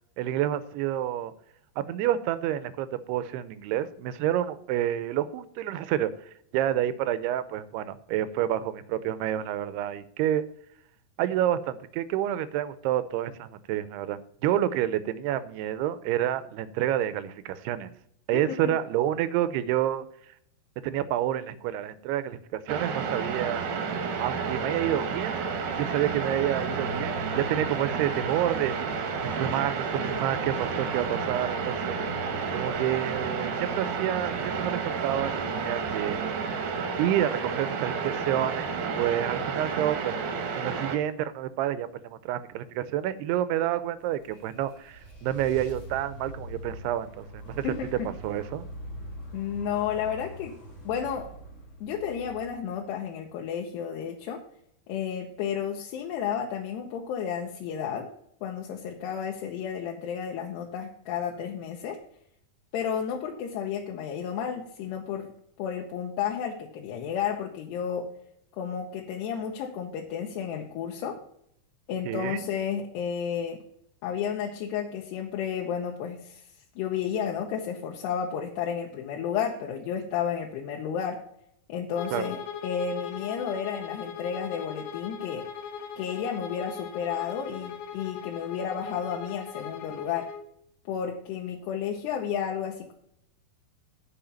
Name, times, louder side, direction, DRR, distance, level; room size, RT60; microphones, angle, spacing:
voice 1, 0.2-1.3 1.8-6.1 6.5-10.5 11.2-17.9 18.3-20.1 20.8-23.7 24.2-25.4 25.7-32.0 32.5-36.2 37.0-40.2 40.6-47.7 48.1-48.7 72.0-72.4 82.1-82.3, right 11 dB, 85° right, 14 dB, 2.6 m, -29 dB
sound 1, 22.7-41.0, right 5 dB, 65° right, 2.3 m, -31 dB
sound 2, 43.8-53.1, right 1 dB, 40° left, 1.0 m, -43 dB
voice 2, 47.6-48.1 49.3-50.5 50.8-51.3 51.8-54.4 54.9-58.1 58.4-62.0 62.7-65.3 65.6-68.1 68.6-71.2 71.9-73.6 74.0-76.4 76.8-81.2 81.7-85.5 86.0-90.3 90.9-92.9, left 8 dB, 90° left, 0 dB, 3.0 m, -32 dB
Bowed string instrument, 81.9-90.5, left 7 dB, 75° left, 2.6 m, -39 dB
8.8 x 5.7 x 7.0 m, 0.71 s
omnidirectional pair, 4.7 m